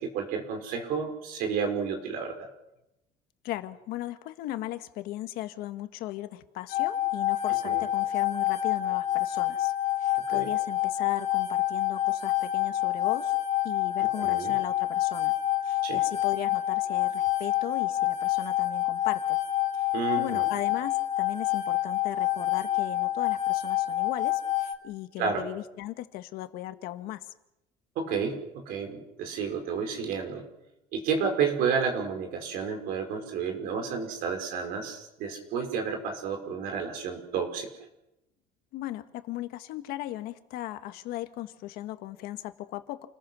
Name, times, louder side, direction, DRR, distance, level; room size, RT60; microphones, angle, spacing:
voice 1, 0.0-2.5 7.6-7.8 10.3-10.5 14.2-14.5 15.8-16.0 19.9-20.5 25.2-25.4 28.0-30.4 30.9-37.7, right 6 dB, 65° right, 5 dB, 5.3 m, -31 dB
voice 2, 3.4-9.7 10.0-13.3 13.6-15.3 15.6-19.4 19.7-19.9 20.2-27.3 38.7-43.1, left 15 dB, 70° left, 9 dB, 1.5 m, -37 dB
sound 1, 6.7-24.7, left 13 dB, 50° left, 2.1 m, -27 dB
29.0 x 20.5 x 6.3 m, 0.88 s
cardioid pair, 170°, 16 cm